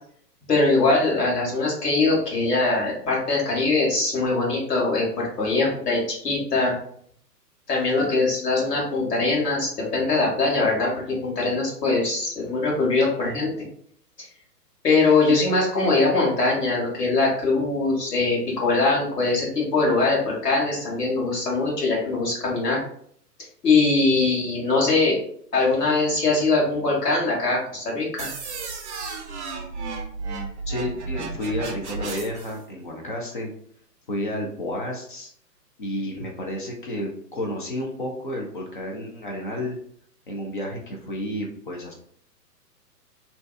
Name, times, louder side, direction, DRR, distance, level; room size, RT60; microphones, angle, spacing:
voice 1, 0.5-6.7 7.7-10.9 11.2-13.5 14.8-22.8 23.6-25.2 25.5-28.3, left 3 dB, 75° left, -3 dB, 1.4 m, -22 dB
sound 1, 28.2-32.6, right 4 dB, 50° right, 0.5 m, -33 dB
voice 2, 30.7-33.5 34.1-35.3 35.8-39.8 40.3-41.9, left 1 dB, 35° left, 0 dB, 0.4 m, -31 dB
2.6 x 2.2 x 2.2 m, 0.63 s
figure-of-eight pair, 120°, 49 cm